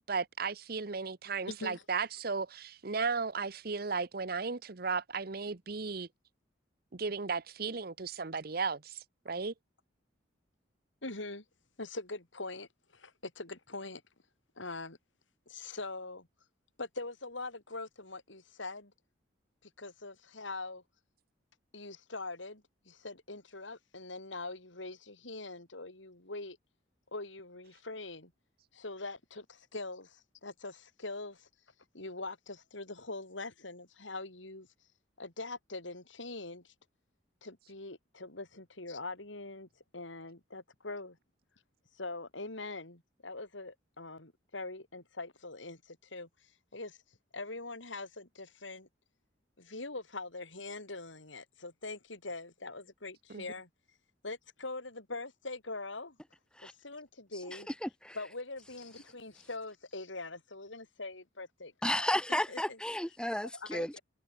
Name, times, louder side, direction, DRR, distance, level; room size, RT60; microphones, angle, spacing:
voice 1, 0.1-6.1 6.9-9.5 53.3-53.4, right 5 dB, 55° right, 0.9 m, -35 dB
voice 2, 1.5-1.8 11.0-11.4 11.8-14.0 14.6-15.0 15.5-16.3 16.8-18.9 19.6-20.8 21.7-26.6 27.1-28.3 28.7-31.5 31.9-34.7 35.2-36.7 37.4-39.7 39.9-41.2 41.9-46.3 46.7-47.0 47.3-48.9 49.6-53.7 54.2-56.2 56.6-57.7 58.2-62.8 63.5-64.0, left 3 dB, 85° left, 5.2 m, -43 dB
voice 3, 57.8-58.2 61.8-64.0, left 1 dB, 5° left, 1.7 m, -33 dB
head